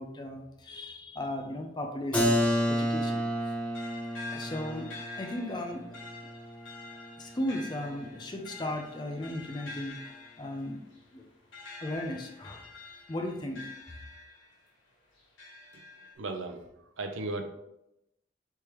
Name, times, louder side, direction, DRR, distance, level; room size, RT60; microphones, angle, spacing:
voice 1, 0.0-2.4 2.7-3.2 4.3-4.9 5.2-6.0 7.2-10.8 11.1-11.3 11.8-12.7 13.1-13.7, left 1 dB, 20° left, 4 dB, 0.4 m, -36 dB
Keyboard (musical), 2.1-7.7, equal, 5° left, 0.9 m, -31 dB
sound 1, 3.0-14.7 15.2-16.1, left 3 dB, 70° left, 1.2 m, -47 dB
voice 2, 16.1-17.5, right 2 dB, 75° right, 5 dB, 0.6 m, -36 dB
4.7 x 3.4 x 3.0 m, 0.87 s
head